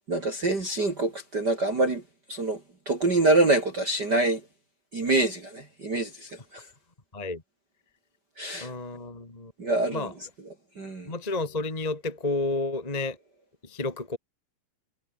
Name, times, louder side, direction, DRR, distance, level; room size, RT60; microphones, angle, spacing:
voice 1, 0.1-2.0 2.3-2.6 2.9-4.4 4.9-6.6 8.4-8.7 9.6-10.1 10.8-11.1, right 2 dB, 30° right, 3.1 m, -25 dB
voice 2, 8.6-9.5 9.9-10.1 11.1-13.2 13.7-14.2, left 2 dB, 10° left, 2.3 m, -31 dB
omnidirectional pair, 4.4 m